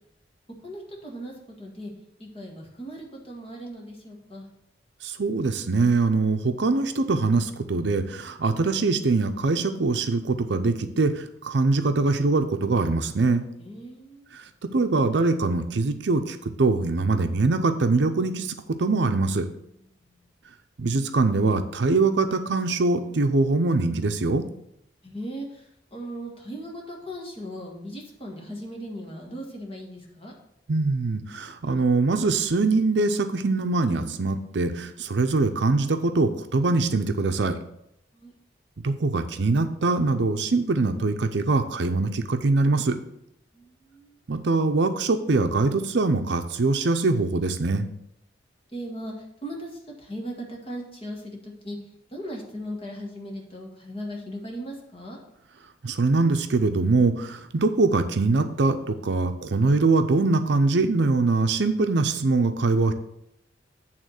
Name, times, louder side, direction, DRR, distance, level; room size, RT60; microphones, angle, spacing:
voice 1, 0.6-1.9 2.2-4.5 13.6-14.3 19.8-20.3 25.0-30.3 38.1-38.3 43.5-44.2 48.7-51.8 52.1-55.2, equal, 30° left, -1 dB, 1.6 m, -38 dB
voice 2, 5.0-13.4 14.3-14.4 14.7-19.5 20.8-24.4 30.7-37.6 38.8-43.0 44.3-47.9 55.8-62.9, right 3 dB, 65° right, 7 dB, 0.6 m, -23 dB
8.8 x 3.6 x 6.4 m, 0.79 s
head